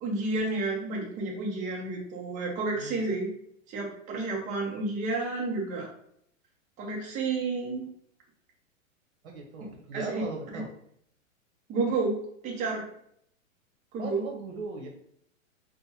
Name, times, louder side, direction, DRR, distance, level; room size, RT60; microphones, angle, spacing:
voice 1, 0.0-3.3 3.7-5.9 6.8-7.8 9.9-10.2 10.5-10.6 11.7-12.2 12.4-12.8 13.9-14.2, right 3 dB, 20° right, -1 dB, 0.8 m, -30 dB
voice 2, 2.7-3.2 9.2-10.7 14.0-14.9, right 3 dB, 55° right, 2 dB, 1.2 m, -38 dB
5.1 x 2.3 x 2.8 m, 0.68 s
hypercardioid pair, 145°, 40 cm